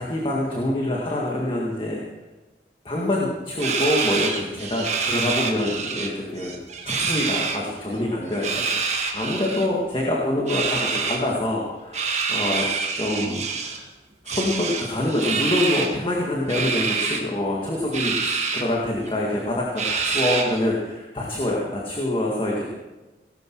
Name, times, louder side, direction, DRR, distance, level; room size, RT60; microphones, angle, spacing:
voice 1, 0.0-2.0 2.9-6.6 6.9-13.8 14.2-22.6, left 1 dB, 30° left, -3 dB, 1.9 m, -26 dB
sound 1, 3.6-6.1 6.4-7.6 8.3-9.7 10.5-11.2 11.9-13.8 14.3-15.9 16.5-17.2 17.9-18.6 19.1-19.2 19.8-20.6, right 5 dB, 40° right, 1.5 m, -26 dB
18.0 x 12.0 x 4.7 m, 1.1 s
head